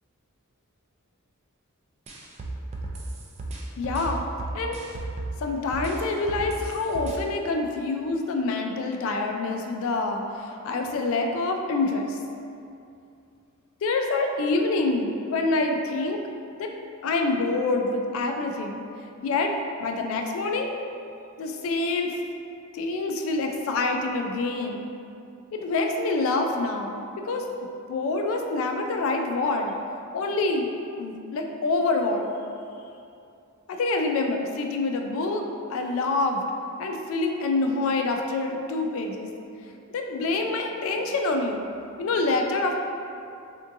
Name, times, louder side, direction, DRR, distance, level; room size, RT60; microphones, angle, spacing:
sound 1, 2.1-5.4 5.7-7.2, right 2 dB, 30° right, 0.3 m, -34 dB
voice 1, 3.8-4.2 4.5-4.8 5.4-12.2 13.8-16.2 16.6-16.7 17.0-18.8 19.2-19.5 19.8-20.7 21.4-22.2 22.7-24.9 25.5-27.0 27.2-27.5 27.9-29.7 30.1-30.7 31.0-32.3 33.7-36.4 36.8-39.3 39.6-41.6 42.0-42.8, left 3 dB, 65° left, 3 dB, 0.3 m, -26 dB
3.5 x 2.6 x 2.5 m, 2.6 s
head